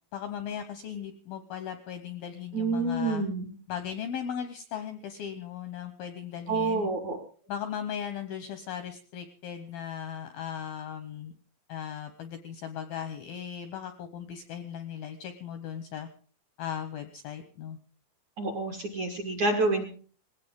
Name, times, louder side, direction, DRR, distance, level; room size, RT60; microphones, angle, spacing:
voice 1, 0.1-3.2 3.7-6.9 7.5-11.3 11.7-16.1 16.6-17.8, left 8 dB, 80° left, 8 dB, 2.2 m, -37 dB
voice 2, 2.5-3.5 6.5-7.2 18.4-19.9, right 3 dB, 60° right, 3 dB, 2.0 m, -28 dB
20.0 x 17.0 x 3.7 m, 0.42 s
omnidirectional pair, 5.6 m